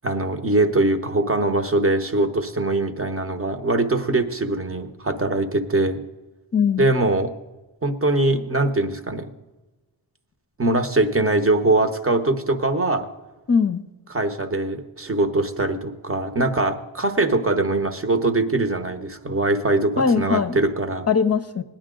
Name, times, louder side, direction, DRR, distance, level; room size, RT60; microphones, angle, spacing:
voice 1, 0.0-6.0 6.8-7.3 7.8-9.3 10.6-13.1 14.1-21.1, right 2 dB, 30° right, 9 dB, 1.0 m, -22 dB
voice 2, 6.5-6.9 13.5-13.8 20.0-20.6 21.1-21.6, left 6 dB, 35° left, 11 dB, 0.7 m, -20 dB
17.5 x 10.0 x 3.8 m, 1.1 s
wide cardioid pair, 85°, 47 cm